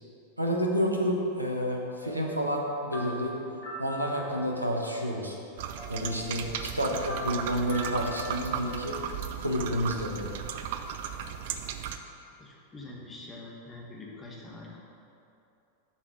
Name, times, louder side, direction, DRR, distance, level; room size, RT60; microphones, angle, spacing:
voice 1, 0.4-5.4 5.9-9.0 9.4-10.3, equal, 90° right, 0 dB, 1.0 m, -30 dB
sound 1, 2.0-4.8 5.2-5.3 5.5-8.9, right 1 dB, 50° left, 1.8 m, -42 dB
sound 2, 5.6-12.0, right 8 dB, 55° right, 0.5 m, -36 dB
voice 2, 12.4-14.8, left 2 dB, 15° left, -3 dB, 1.5 m, -45 dB
7.2 x 5.0 x 6.2 m, 2.7 s
figure-of-eight pair, 90°, 0 cm